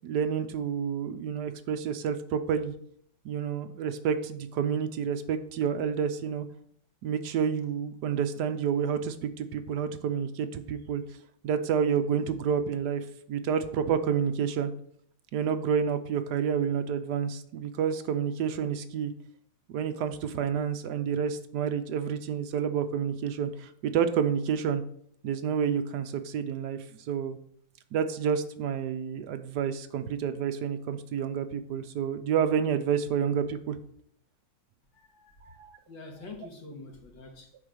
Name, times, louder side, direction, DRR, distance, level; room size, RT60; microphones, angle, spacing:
voice 1, 0.0-2.7 3.2-6.5 7.0-11.0 11.4-14.7 15.3-19.1 19.7-24.8 25.2-27.4 27.9-33.8 35.4-35.8, right 7 dB, 70° right, 9 dB, 1.2 m, -29 dB
voice 2, 34.9-37.6, left 3 dB, 90° left, 2 dB, 2.3 m, -46 dB
8.6 x 5.0 x 6.4 m, 0.66 s
omnidirectional pair, 2.0 m